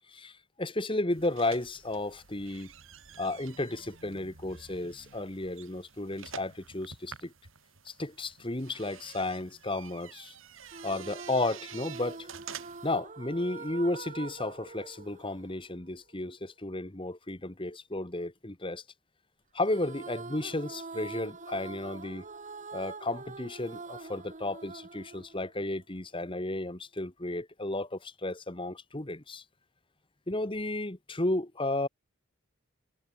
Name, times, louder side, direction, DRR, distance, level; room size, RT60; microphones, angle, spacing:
voice 1, 0.1-2.7 3.2-7.3 7.8-10.3 10.8-12.3 12.8-18.8 19.5-22.2 22.7-29.4 30.3-31.9, left 2 dB, 25° left, 1.5 m, -33 dB
sound 1, 1.1-13.0, right 7 dB, 60° right, 3.3 m, -49 dB
sound 2, 10.6-16.1 19.6-26.1, right 3 dB, 35° right, 1.2 m, -45 dB
head